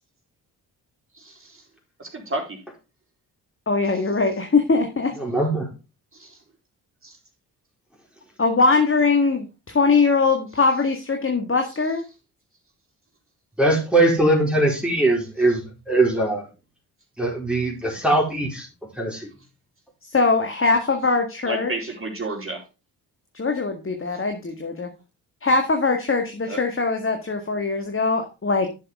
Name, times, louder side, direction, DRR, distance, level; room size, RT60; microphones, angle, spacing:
voice 1, 1.1-1.6 2.0-2.6 6.1-6.4 7.0-7.2 21.4-22.6 26.5-26.6, right 2 dB, 30° right, 1 dB, 4.1 m, -31 dB
voice 2, 3.7-5.1 8.4-12.0 20.1-21.7 23.3-24.9 25.4-28.7, left 4 dB, 30° left, 4 dB, 1.8 m, -21 dB
voice 3, 5.2-5.7 13.6-16.5 17.2-18.7 19.0-19.3, right 2 dB, ahead, -1 dB, 4.3 m, -21 dB
10.5 x 6.6 x 3.6 m, 0.29 s
hypercardioid pair, 40°, 45 cm